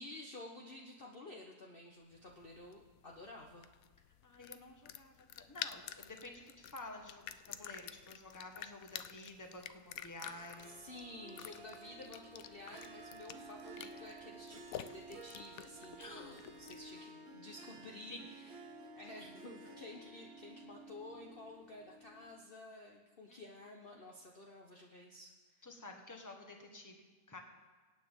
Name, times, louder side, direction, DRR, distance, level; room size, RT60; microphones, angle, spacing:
voice 1, 0.0-3.7 10.7-18.6 18.9-25.7, left 2 dB, 40° left, 0 dB, 1.1 m, -52 dB
sound 1, 2.1-17.0, left 10 dB, 75° left, 1.0 m, -50 dB
voice 2, 4.2-10.8 16.0-16.4 18.1-18.2 23.3-23.4 25.6-27.4, left 2 dB, 10° left, 2 dB, 1.4 m, -51 dB
Harp, 10.2-22.4, right 2 dB, 70° right, 1.6 m, -54 dB
24.0 x 9.0 x 3.7 m, 1.4 s
omnidirectional pair, 1.6 m